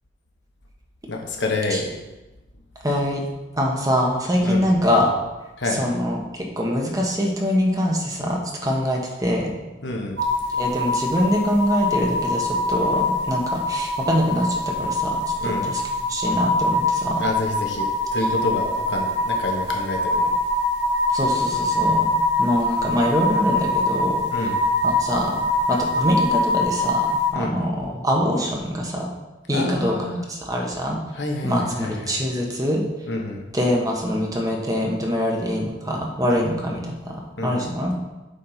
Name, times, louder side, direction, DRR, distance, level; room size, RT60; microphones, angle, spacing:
voice 1, 1.1-1.9 4.4-4.7 5.6-5.8 9.8-10.2 15.4-15.7 17.2-20.3 24.3-24.6 27.3-27.5 29.5-30.3 31.1-32.2 33.1-33.5 36.3-36.5 37.4-37.7, left 2 dB, 65° left, 1 dB, 1.4 m, -28 dB
voice 2, 2.8-3.2 3.6-5.2 5.8-9.5 10.6-15.8 16.1-17.2 21.1-22.1 22.4-24.2 24.8-25.4 25.7-29.1 29.5-29.9 30.3-31.0 31.4-32.8 33.5-38.0, equal, 20° right, -1 dB, 1.3 m, -24 dB
sound 1, 10.2-27.3, left 2 dB, 65° right, 2.1 m, -23 dB
8.4 x 4.3 x 5.8 m, 1.1 s
head